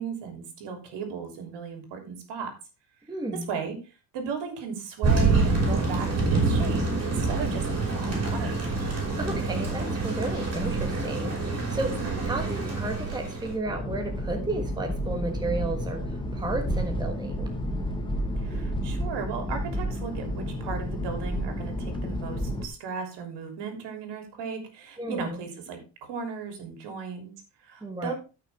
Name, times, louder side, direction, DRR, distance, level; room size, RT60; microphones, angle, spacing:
voice 1, 0.0-2.5 3.3-3.8 4.1-8.6 12.0-12.2 18.4-28.1, right 5 dB, 65° right, 5 dB, 3.3 m, -36 dB
voice 2, 3.1-3.5 9.2-12.0 12.2-16.0 16.3-17.5 25.0-25.4 27.8-28.1, right 2 dB, 10° right, 3 dB, 1.3 m, -33 dB
Thunder, 5.0-13.5, right 3 dB, 35° right, 5.6 m, -26 dB
sound 1, 13.6-22.7, equal, 10° left, 1.4 m, -31 dB
14.0 x 6.0 x 3.5 m, 0.31 s
cardioid pair, 140°, 45 cm